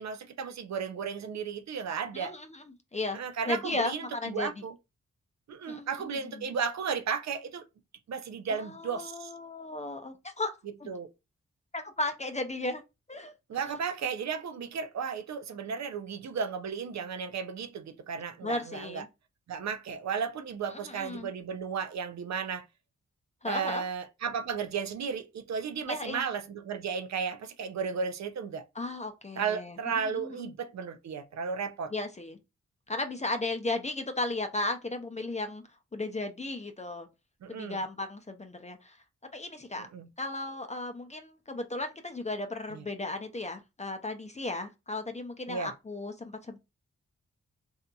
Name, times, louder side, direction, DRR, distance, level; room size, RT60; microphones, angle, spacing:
voice 1, 0.0-2.3 3.1-4.7 5.5-7.6 8.1-9.3 10.9-11.1 13.5-19.0 19.5-22.7 23.5-28.6 29.4-31.9 37.4-37.8 39.9-40.1 42.7-42.9 45.5-45.7, right 6 dB, 65° right, 0.5 m, -34 dB
voice 2, 2.1-2.6 2.9-3.2 3.4-4.6 5.7-6.5 8.5-10.5 10.8-10.9 11.7-12.8 13.1-13.3 18.4-19.1 20.7-21.3 23.4-23.9 25.9-26.2 28.7-30.5 31.9-32.4 32.9-35.6 35.9-37.1 37.5-39.0 39.3-39.9 40.2-46.6, left 2 dB, 25° left, 0.6 m, -35 dB
2.7 x 2.6 x 2.3 m
supercardioid pair, 40°, 30 cm